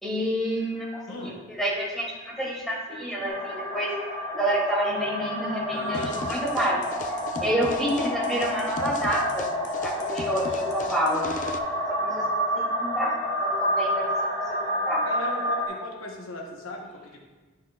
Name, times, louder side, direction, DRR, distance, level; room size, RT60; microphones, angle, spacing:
voice 1, 0.0-3.9 4.3-6.8 7.4-9.5 9.8-11.3 11.9-13.1 13.4-14.1 14.5-15.0, right 1 dB, ahead, -6 dB, 2.1 m, -28 dB
sound 1, 3.3-15.7, equal, 25° left, 2.2 m, -29 dB
voice 2, 5.7-6.2 15.0-17.2, left 1 dB, 80° left, 1 dB, 1.0 m, -37 dB
sound 2, 5.9-11.6, left 3 dB, 40° left, 0.4 m, -38 dB
10.5 x 5.9 x 2.3 m, 1.3 s
head